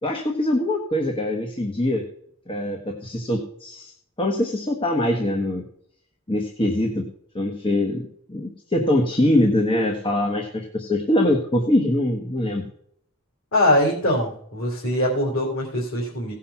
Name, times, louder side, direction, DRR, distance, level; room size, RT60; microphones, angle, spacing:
voice 1, 0.0-2.0 2.5-5.6 6.3-7.1 7.3-12.6, left 1 dB, 25° left, 2 dB, 1.1 m, -23 dB
voice 2, 13.5-16.3, left 1 dB, 85° left, -3 dB, 3.1 m, -22 dB
17.0 x 5.7 x 5.8 m, 0.69 s
head